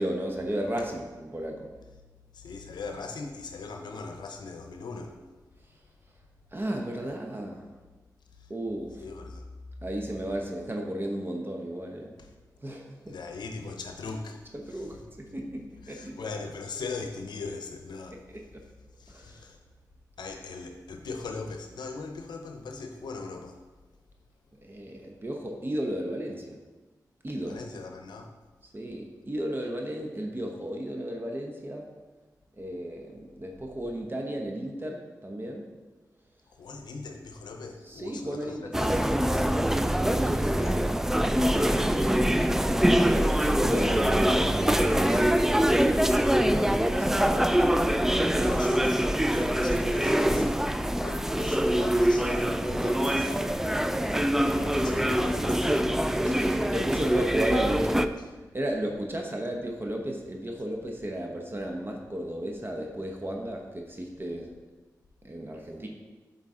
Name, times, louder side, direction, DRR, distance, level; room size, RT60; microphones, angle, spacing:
voice 1, 0.0-1.7 6.5-7.7 8.5-9.0 9.8-12.1 12.6-13.2 14.5-16.4 18.3-18.6 19.1-19.4 24.6-26.5 27.2-27.6 28.7-31.9 32.6-35.7 37.8-38.7 40.0-40.8 41.5-42.6 43.0-47.6 48.3-48.6 54.8-54.9 56.1-64.6 65.2-65.9, right 1 dB, 30° right, 1 dB, 0.8 m, -34 dB
voice 2, 2.3-5.2 8.4-8.5 9.0-9.4 12.2-12.3 13.1-15.0 15.8-18.4 19.0-19.6 20.2-23.6 27.4-28.3 36.5-39.8 40.6-40.8 48.4-49.0 49.3-55.9, left 4 dB, 85° left, 4 dB, 0.6 m, -40 dB
sound 1, 38.7-58.1, equal, 5° right, 0.3 m, -24 dB
7.4 x 4.1 x 3.7 m, 1.2 s
cardioid pair, 45°, 7 cm